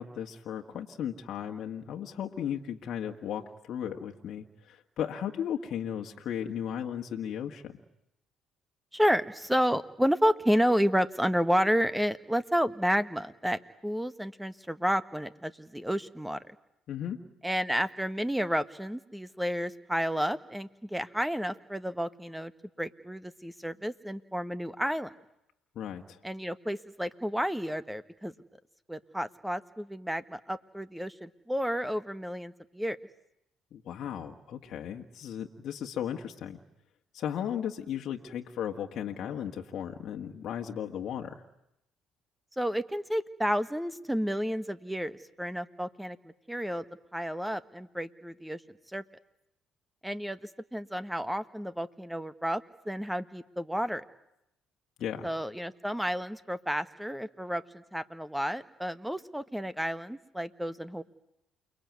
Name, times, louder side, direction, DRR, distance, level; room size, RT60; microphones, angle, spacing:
voice 1, 0.0-7.8 16.9-17.2 25.7-26.2 33.7-36.6 37.1-41.4 55.0-55.3, left 9 dB, 60° left, 2 dB, 1.7 m, -36 dB
voice 2, 8.9-16.4 17.4-22.5 22.8-25.1 26.2-28.3 28.9-33.0 42.6-46.8 47.1-48.6 48.9-49.0 50.0-54.0 55.2-61.0, equal, 5° right, 13 dB, 1.4 m, -31 dB
29.0 x 20.5 x 9.6 m, 0.83 s
hypercardioid pair, 60°, 0 cm